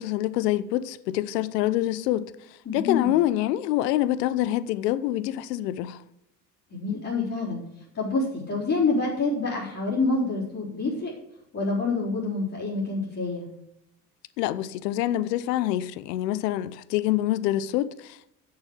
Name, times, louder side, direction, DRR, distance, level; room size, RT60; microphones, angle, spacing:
voice 1, 0.0-2.3 2.7-6.0 14.4-18.3, left 14 dB, 80° left, 0.8 m, -26 dB
voice 2, 2.6-3.2 6.7-7.6 7.9-11.1 11.5-13.4, left 3 dB, 35° left, 4.3 m, -27 dB
8.1 x 6.8 x 8.1 m
hypercardioid pair, 75°, 48 cm